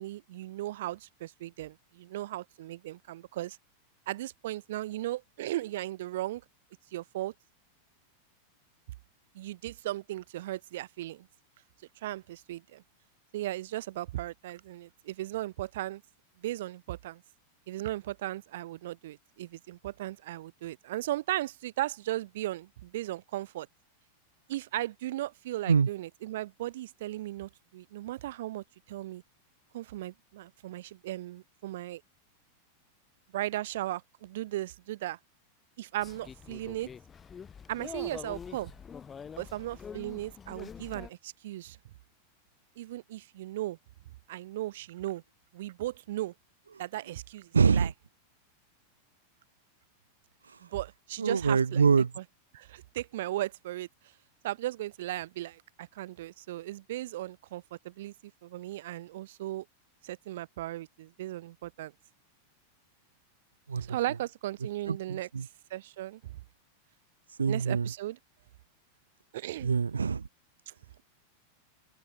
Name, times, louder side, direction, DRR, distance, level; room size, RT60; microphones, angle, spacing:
voice 1, 0.0-3.6 4.1-6.4 6.9-7.3 9.3-11.3 12.0-12.8 13.3-16.0 16.4-17.2 17.7-23.7 24.5-29.2 29.7-32.0 33.3-35.2 35.8-36.9 37.7-38.7 39.4-41.8 42.8-43.8 44.3-45.2 45.5-46.3 46.8-47.9 50.6-51.8 52.5-53.9 54.4-58.1 58.4-59.6 60.0-61.9 63.8-65.3 65.7-66.4 67.5-68.2 69.3-69.7 70.7-70.8, right 15 dB, 55° right, 6.6 m, -36 dB
sound 1, 36.0-41.1, left 7 dB, 20° left, 7.4 m, -45 dB
voice 2, 47.5-47.9 50.4-50.7 51.2-52.1 63.7-64.0 64.9-65.5 67.3-67.9 69.6-70.3, right 5 dB, 75° right, 1.2 m, -25 dB
open air
figure-of-eight pair, 90°, 0 cm